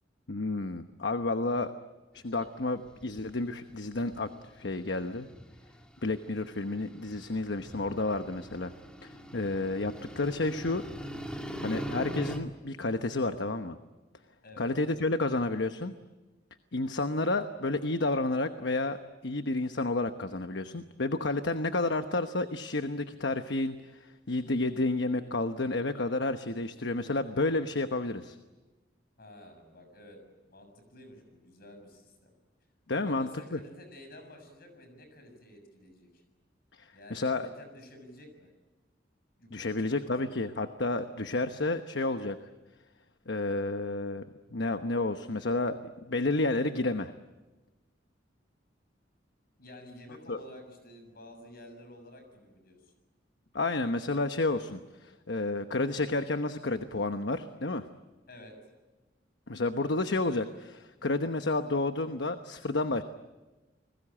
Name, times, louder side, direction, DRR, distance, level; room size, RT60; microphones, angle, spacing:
voice 1, 0.3-1.7 2.1-4.3 4.6-5.3 6.0-8.7 9.0-10.8 11.6-13.8 14.6-15.9 16.7-19.0 19.2-23.7 24.0-28.4 32.9-33.6 36.8-37.5 39.5-42.4 43.3-44.2 44.5-45.8 46.1-47.1 50.3-50.4 53.5-57.9 59.5-63.0, left 2 dB, 70° left, 8 dB, 1.1 m, -30 dB
sound 1, 2.2-3.4 3.9-12.4, equal, 5° left, 2.4 m, -41 dB
voice 2, 29.2-32.3 32.9-36.2 36.9-38.5 39.4-40.4 49.6-52.9 58.3-58.6, left 1 dB, 55° left, 6 dB, 7.1 m, -51 dB
30.0 x 21.0 x 8.8 m, 1.2 s
head